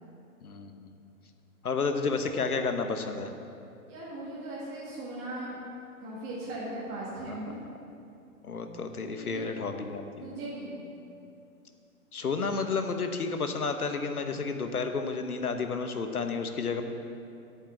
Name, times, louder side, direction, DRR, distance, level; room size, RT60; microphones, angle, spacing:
voice 1, 0.4-0.9 1.6-3.3 7.3-7.4 8.4-10.3 12.1-16.8, left 4 dB, 75° left, 7 dB, 1.2 m, -31 dB
voice 2, 3.9-5.6 6.0-7.6 9.2-9.7 10.2-10.8, right 1 dB, 25° right, -7 dB, 2.0 m, -38 dB
8.6 x 7.6 x 7.2 m, 2.6 s
figure-of-eight pair, 125°, 44 cm